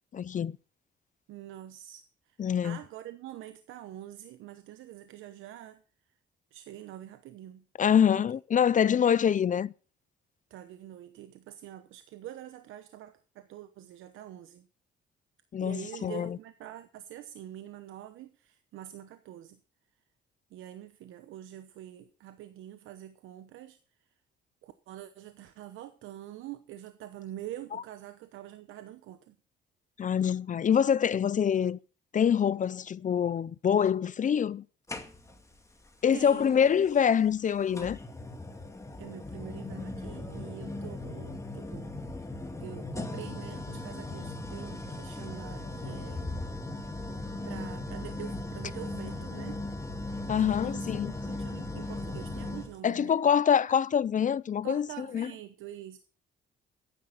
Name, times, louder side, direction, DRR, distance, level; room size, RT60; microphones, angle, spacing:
voice 1, 0.1-0.6 2.4-2.8 7.8-9.7 15.5-16.4 30.0-31.8 32.1-34.6 36.0-38.0 50.3-51.1 52.8-55.3, left 8 dB, 40° left, 0.5 m, -25 dB
voice 2, 1.3-5.8 6.5-7.6 8.1-8.2 10.5-14.7 15.6-19.6 20.5-23.8 24.6-29.4 36.1-36.7 39.0-41.9 42.2-42.3 42.6-46.4 47.4-49.6 50.3-50.9 51.2-53.2 54.6-56.0, right 13 dB, 85° right, 1.0 m, -45 dB
sound 1, 34.9-35.5 36.9-37.0 37.7-52.8, left 2 dB, 15° left, 2.1 m, -38 dB
14.0 x 10.5 x 4.1 m
cardioid pair, 90°, 20 cm